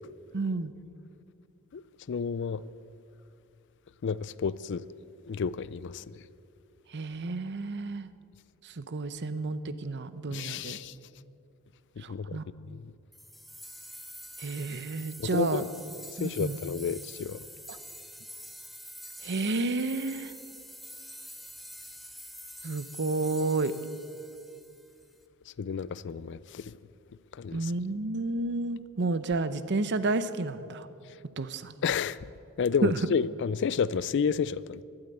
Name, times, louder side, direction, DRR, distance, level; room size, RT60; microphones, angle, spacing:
voice 1, 0.3-0.7 6.9-8.1 8.6-10.8 12.0-12.5 14.4-15.6 16.2-16.6 17.7-17.8 19.2-20.3 22.6-23.7 27.5-30.9 31.4-31.7 32.8-33.0, right 3 dB, 50° right, 0.7 m, -31 dB
voice 2, 2.1-2.6 4.0-4.9 5.3-6.0 10.3-10.9 12.0-12.4 12.7-12.9 15.2-15.7 16.2-17.4 25.6-26.7 27.3-27.7 31.8-32.2 32.6-34.8, left 6 dB, 55° left, 0.4 m, -30 dB
sound 1, 13.1-25.1, equal, ahead, 0.9 m, -46 dB
12.5 x 11.5 x 9.0 m
head